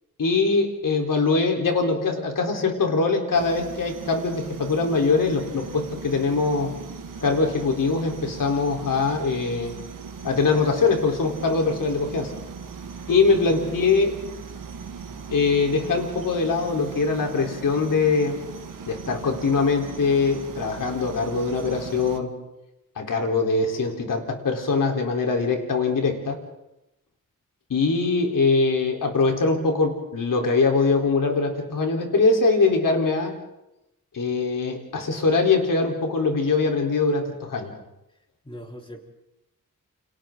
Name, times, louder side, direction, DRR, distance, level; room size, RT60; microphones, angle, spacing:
voice 1, 0.2-6.7 7.2-9.7 10.2-12.3 13.1-14.1 15.3-18.4 18.9-22.3 23.0-26.4 27.7-33.4 34.1-37.7, left 4 dB, 75° left, 2 dB, 4.0 m, -22 dB
sound 1, 3.3-22.2, right 5 dB, 75° right, 1.8 m, -39 dB
voice 2, 38.4-39.0, equal, 15° left, 1 dB, 3.9 m, -40 dB
29.5 x 27.0 x 3.9 m, 0.89 s
wide cardioid pair, 100°, 33 cm